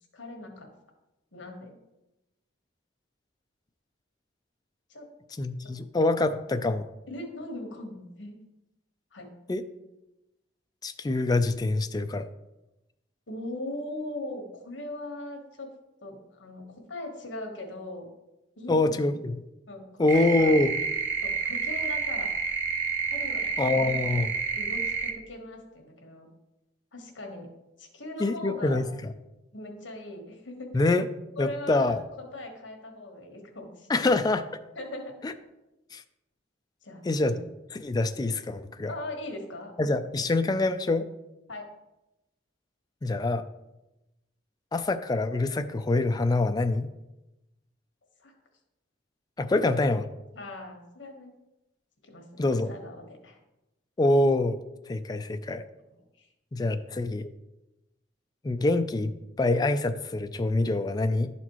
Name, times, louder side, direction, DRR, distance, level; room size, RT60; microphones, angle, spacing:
voice 1, 0.1-0.7 1.3-1.8 4.9-5.1 5.6-5.7 7.1-8.4 9.1-9.3 13.3-15.7 16.0-18.1 18.6-19.0 19.7-20.5 21.2-22.3 23.1-23.5 23.7-24.2 24.5-26.3 26.9-27.5 27.8-28.8 29.5-30.7 31.4-34.1 34.7-35.2 36.8-37.4 38.9-39.7 40.2-40.3 41.5-41.7 48.2-48.3 49.5-49.7 50.3-51.3 52.0-53.4 55.9-56.3 56.5-56.6, left 1 dB, 75° left, 3 dB, 1.3 m, -40 dB
voice 2, 5.4-6.9 9.5-9.6 10.8-12.3 18.7-19.2 20.0-20.7 23.6-24.4 28.2-28.8 30.7-31.1 31.4-32.0 33.9-34.4 35.2-35.3 35.9-36.0 37.1-37.3 37.7-38.9 39.8-41.0 43.0-43.4 44.7-46.9 49.4-50.0 52.4-52.7 54.0-54.6 54.9-55.6 56.5-57.3 58.4-61.3, left 2 dB, 20° left, 8 dB, 0.4 m, -25 dB
sound 1, 20.1-25.1, right 5 dB, 85° right, 0.9 m, -29 dB
11.5 x 4.2 x 3.0 m, 0.97 s
head